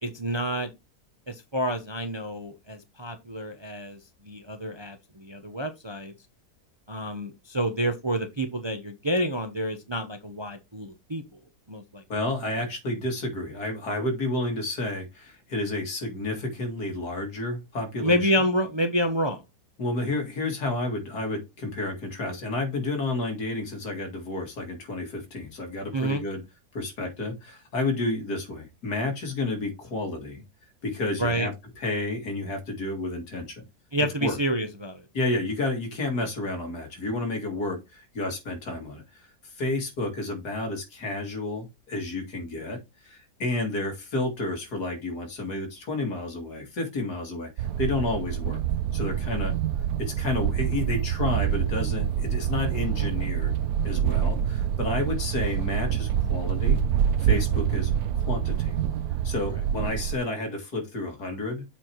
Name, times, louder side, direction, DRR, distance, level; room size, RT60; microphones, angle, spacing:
voice 1, 0.0-0.7 1.3-4.0 4.3-6.1 6.9-11.2 11.7-12.0 18.0-19.4 25.9-26.2 31.2-31.5 33.9-35.0, equal, 25° right, 0.7 m, -28 dB
voice 2, 12.1-18.4 19.8-26.4 26.7-30.4 30.8-33.6 34.2-34.4 35.1-48.6 48.9-49.6 50.0-53.5 53.8-56.8 57.2-58.8 59.2-61.6, left 2 dB, 80° left, 2.8 m, -31 dB
sound 1, 47.6-60.2, right 9 dB, 75° right, 1.1 m, -26 dB
7.4 x 4.5 x 4.5 m
omnidirectional pair, 1.7 m